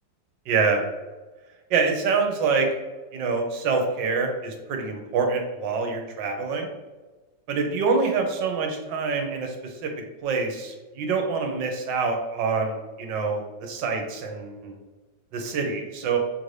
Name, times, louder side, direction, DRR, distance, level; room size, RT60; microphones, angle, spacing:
voice 1, 0.5-0.8 1.7-2.7 3.1-6.7 7.5-9.9 10.2-14.8 15.3-16.2, right 4 dB, 85° right, 3 dB, 1.4 m, -26 dB
5.7 x 2.6 x 3.2 m, 1.3 s
omnidirectional pair, 2.0 m